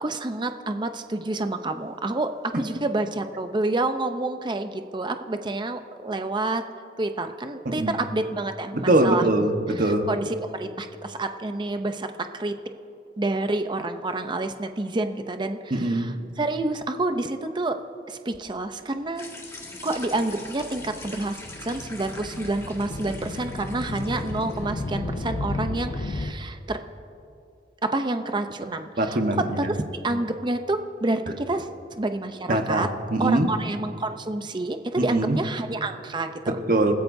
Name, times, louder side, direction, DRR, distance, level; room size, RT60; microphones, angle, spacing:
voice 1, 0.0-6.6 7.0-9.3 10.1-12.5 13.2-17.8 18.1-19.3 19.8-26.8 27.8-29.2 29.6-29.7 30.0-32.9 33.2-36.5, right 2 dB, 25° right, 8 dB, 0.6 m, -28 dB
voice 2, 8.7-10.1 15.7-16.1 29.0-29.7 32.5-33.5 35.0-35.4 36.5-36.9, right 1 dB, 50° right, 5 dB, 1.2 m, -23 dB
sound 1, 19.2-24.7, left 2 dB, 15° left, 1.9 m, -43 dB
sound 2, 19.8-26.3, left 2 dB, 45° left, 0.6 m, -33 dB
29.0 x 15.0 x 2.7 m, 2.6 s
head